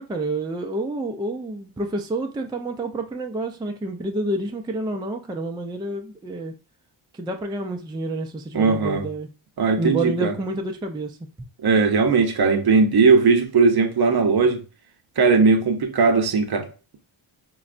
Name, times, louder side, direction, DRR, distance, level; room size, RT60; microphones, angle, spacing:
voice 1, 0.0-6.5 7.1-9.3 9.8-11.2, right 2 dB, 10° right, 0.3 m, -29 dB
voice 2, 8.5-9.1 9.6-10.3 11.6-14.6 15.2-16.7, right 4 dB, 50° right, 0.7 m, -18 dB
3.9 x 2.2 x 2.4 m
cardioid pair, 70°, 49 cm